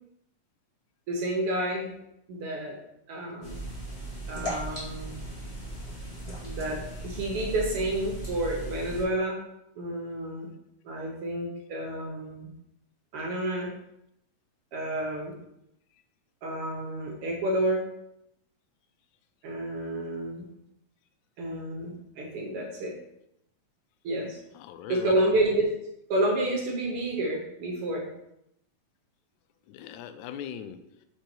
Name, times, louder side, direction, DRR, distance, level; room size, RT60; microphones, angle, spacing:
voice 1, 1.1-1.9 2.3-2.8 3.1-3.6 4.3-5.2 6.4-9.4 9.7-10.5 10.8-12.5 13.1-13.7 14.7-15.4 16.4-17.8 19.4-20.5 21.4-22.9 24.0-24.4 24.9-25.7 26.1-28.1, right 1 dB, 65° right, 0 dB, 1.6 m, -30 dB
sound 1, 3.4-9.0, right 1 dB, 15° left, 1.9 m, -37 dB
voice 2, 24.5-25.2 29.7-31.1, left 9 dB, 85° left, 9 dB, 1.9 m, -40 dB
5.1 x 4.8 x 4.3 m, 0.80 s
omnidirectional pair, 3.3 m